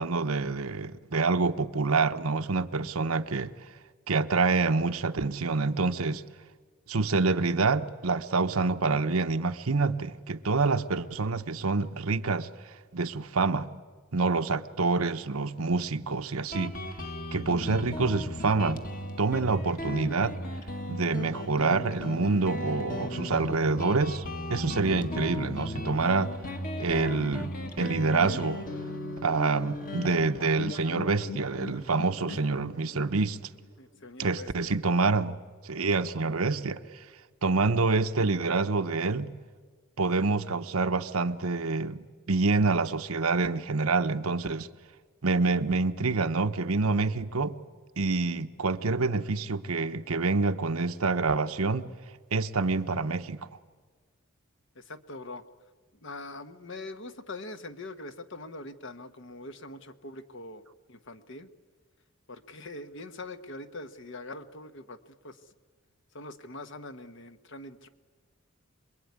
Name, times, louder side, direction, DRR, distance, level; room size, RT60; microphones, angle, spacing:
voice 1, 0.0-3.5 4.1-6.2 6.9-12.5 12.9-13.7 14.1-16.8 17.3-18.8 19.2-20.4 20.9-26.3 26.8-28.6 29.2-33.4 34.2-35.4 35.6-36.8 37.4-39.4 40.0-44.7 45.2-47.6 48.0-51.9 52.3-53.5, right 3 dB, 90° right, 1.0 m, -27 dB
Guitar, 16.5-33.7, left 1 dB, 40° left, 1.8 m, -37 dB
voice 2, 33.8-34.7 54.7-55.4 56.0-61.5 62.3-65.5 66.1-67.9, left 2 dB, 60° left, 1.3 m, -43 dB
26.5 x 22.0 x 9.6 m
head